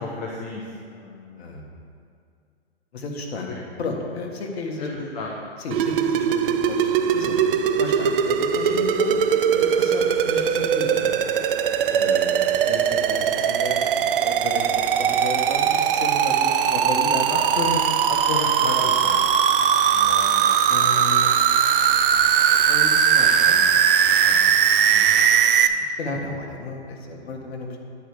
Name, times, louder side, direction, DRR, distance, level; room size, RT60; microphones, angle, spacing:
voice 1, 0.0-1.6 3.5-3.6 4.8-5.3 8.6-8.8 11.9-12.0 17.3-19.2 19.9-20.6, left 3 dB, 40° left, -2 dB, 1.1 m, -32 dB
voice 2, 1.4-1.7 2.9-5.1 5.6-7.4 7.7-9.2 9.5-11.2 12.0-14.7 15.0-17.3 17.5-17.6 20.7-21.3 22.5-25.1 25.7-27.8, left 3 dB, 65° left, 1 dB, 1.8 m, -33 dB
sound 1, 5.7-25.7, right 8 dB, 55° right, 0.6 m, -20 dB
9.9 x 4.8 x 6.9 m, 2.3 s
hypercardioid pair, 130°, 34 cm